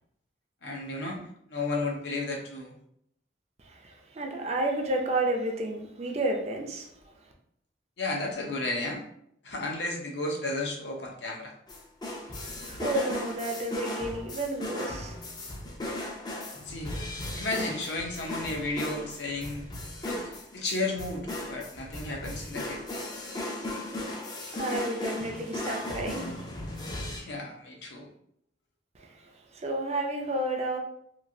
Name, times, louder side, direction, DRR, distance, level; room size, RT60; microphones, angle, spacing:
voice 1, 0.6-1.2 1.5-2.7 8.0-9.0 9.4-11.5 16.6-16.9 17.3-19.7 20.0-20.2 20.5-22.8 27.1-28.1, left 2 dB, 80° left, 0.6 m, -33 dB
voice 2, 3.6-6.9 12.3-15.2 24.1-26.4 28.9-30.8, right 1 dB, 35° right, 0.4 m, -31 dB
sound 1, 11.7-27.2, left 1 dB, 25° left, 0.4 m, -37 dB
3.0 x 2.4 x 2.6 m
head